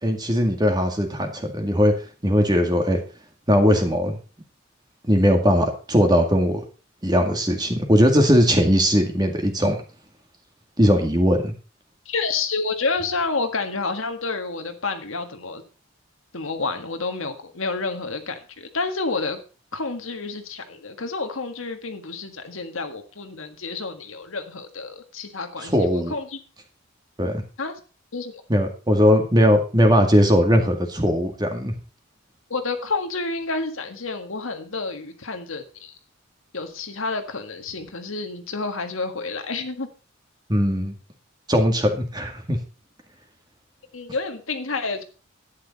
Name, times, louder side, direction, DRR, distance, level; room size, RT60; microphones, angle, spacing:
voice 1, 0.0-1.9 2.2-3.0 3.5-4.2 5.0-6.6 7.0-9.8 10.8-11.5 25.6-26.1 27.2-27.4 28.5-31.7 40.5-40.9 41.5-42.6, equal, 20° right, 4 dB, 2.0 m, -19 dB
voice 2, 12.0-15.6 16.3-19.4 19.7-26.4 27.6-27.7 28.1-28.3 32.5-36.0 36.5-39.9 43.9-45.0, left 3 dB, 75° left, 6 dB, 1.6 m, -29 dB
11.0 x 9.7 x 4.1 m, 0.36 s
head